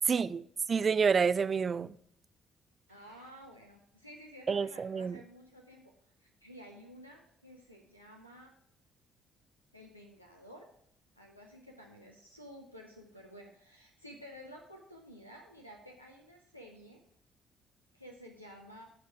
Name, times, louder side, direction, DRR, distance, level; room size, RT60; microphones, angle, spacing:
voice 1, 0.1-0.4 0.7-2.0 4.5-5.2, right 5 dB, 35° right, 0.3 m, -28 dB
voice 2, 2.9-5.9 6.2-8.5 9.7-10.7 11.2-17.0 17.9-18.9, equal, 90° left, 0.6 m, -52 dB
12.0 x 4.4 x 4.8 m
figure-of-eight pair, 45°, 0 cm